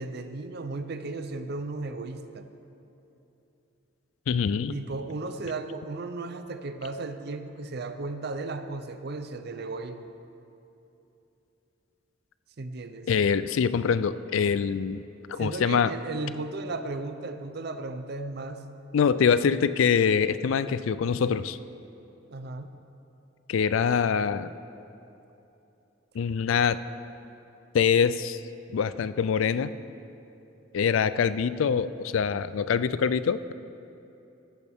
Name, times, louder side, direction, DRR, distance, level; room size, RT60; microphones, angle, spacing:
voice 1, 0.0-2.5 4.7-10.1 12.6-13.1 15.4-18.6 19.4-19.6 22.3-22.8, right 3 dB, 55° right, 9 dB, 0.6 m, -35 dB
voice 2, 4.3-4.8 13.1-15.0 15.3-15.9 18.9-21.6 23.5-24.5 26.1-26.8 27.7-28.4 28.7-29.7 30.7-33.5, left 6 dB, 85° left, 15 dB, 0.4 m, -24 dB
14.0 x 10.5 x 3.5 m, 2.9 s
head